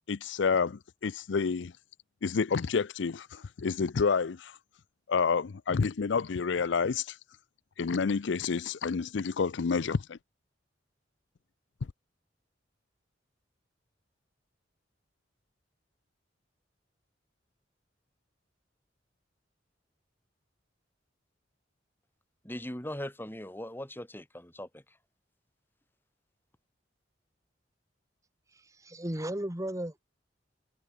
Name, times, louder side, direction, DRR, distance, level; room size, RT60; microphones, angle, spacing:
voice 1, 0.1-1.7 2.2-4.6 5.1-7.2 7.8-10.2, left 5 dB, 70° left, 0.5 m, -29 dB
voice 2, 22.4-24.8, left 1 dB, 10° left, 7.1 m, -40 dB
voice 3, 28.5-30.0, right 1 dB, 15° right, 1.9 m, -35 dB
head